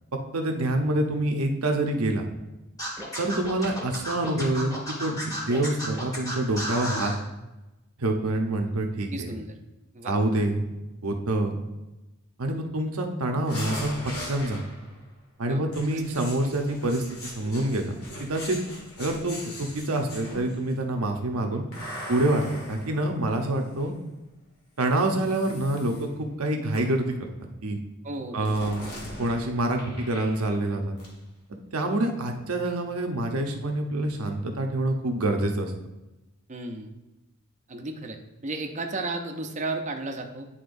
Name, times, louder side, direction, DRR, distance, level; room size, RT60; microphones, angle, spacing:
voice 1, 0.3-2.3 3.2-7.1 8.0-9.3 10.0-10.6 11.0-11.6 12.4-14.6 15.4-18.6 19.0-21.7 22.1-23.9 24.8-27.1 27.6-27.8 28.3-28.8 29.2-31.0 31.7-35.7, right 1 dB, 80° right, 3 dB, 0.9 m, -26 dB
Scratching (performance technique), 2.8-7.2, equal, 15° left, 1.5 m, -33 dB
voice 2, 9.1-9.5 9.9-10.1 15.4-15.6 15.9-16.0 28.0-28.6 36.5-36.9 37.7-38.2 38.4-40.5, right 2 dB, 35° right, 4 dB, 0.6 m, -33 dB
sound 1, 13.5-15.0 15.7-20.7 21.7-23.9 24.8-26.0 26.7-27.1 28.5-30.7 31.0-31.1, left 1 dB, 85° left, 1.8 m, -41 dB
10.0 x 4.3 x 2.6 m, 1.0 s
head